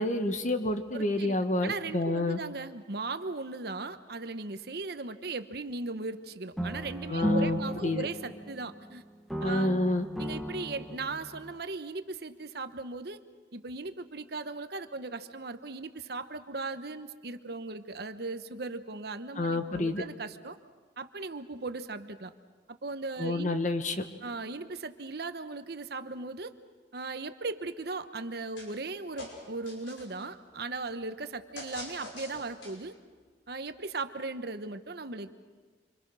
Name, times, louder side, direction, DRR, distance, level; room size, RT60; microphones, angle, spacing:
voice 1, 0.0-2.4 7.1-8.1 9.4-10.1 19.3-20.0 23.2-24.0, left 2 dB, 40° left, 8 dB, 1.5 m, -29 dB
voice 2, 0.9-9.0 9.4-9.8 10.2-13.2 13.5-20.6 21.0-22.3 22.7-23.6 24.2-26.5 26.9-32.9 33.5-35.3, right 3 dB, 55° right, 10 dB, 1.0 m, -38 dB
sound 1, 6.6-8.9 9.3-11.6, equal, ahead, 1.3 m, -35 dB
sound 2, 28.6-28.9 29.2-30.2 31.6-33.0, left 2 dB, 85° left, 5.7 m, -44 dB
27.5 x 25.5 x 6.3 m, 1.5 s
head